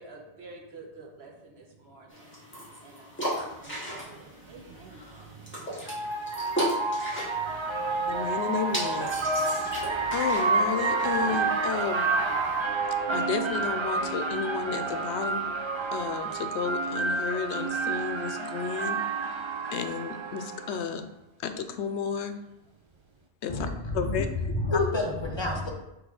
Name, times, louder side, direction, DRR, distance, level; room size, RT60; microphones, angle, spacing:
voice 1, 0.0-6.1, right 3 dB, 75° right, 0 dB, 1.3 m, -49 dB
sound 1, 2.1-12.6, right 1 dB, 10° left, 1.7 m, -37 dB
sound 2, 3.7-3.8 5.2-20.8, right 3 dB, 40° right, 0.4 m, -29 dB
voice 2, 8.1-12.2 13.1-15.5 15.9-19.0 19.7-21.1 21.4-22.4 23.4-23.7 23.9-24.3, left 6 dB, 85° left, 8 dB, 0.9 m, -32 dB
voice 3, 23.5-25.7, left 2 dB, 25° left, 0 dB, 0.8 m, -29 dB
6.3 x 3.4 x 4.8 m, 0.92 s
omnidirectional pair, 1.1 m